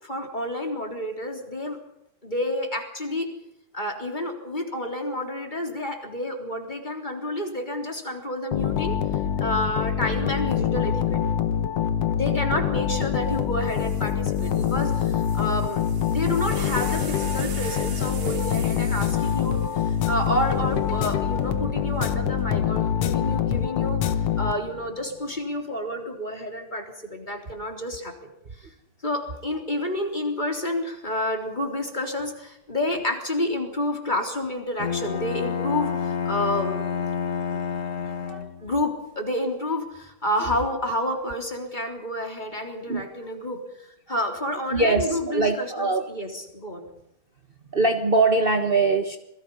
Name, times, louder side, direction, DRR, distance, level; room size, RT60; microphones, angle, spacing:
voice 1, 0.0-1.8 2.2-3.3 3.7-9.0 9.4-11.2 12.1-15.8 16.1-24.0 24.4-28.3 28.6-28.7 29.0-36.8 38.6-46.9, left 1 dB, 15° left, 3 dB, 3.5 m, -29 dB
sound 1, 8.5-24.9, left 9 dB, 65° left, 2.0 m, -25 dB
sound 2, 13.3-13.4 13.7-21.1 21.9-22.4, right 5 dB, 85° right, 4.5 m, -42 dB
Bowed string instrument, 34.8-38.8, left 6 dB, 40° left, 1.3 m, -29 dB
voice 2, 44.7-46.1 47.7-49.2, right 3 dB, 60° right, 5 dB, 0.5 m, -22 dB
27.0 x 21.5 x 5.5 m, 0.82 s
omnidirectional pair, 3.3 m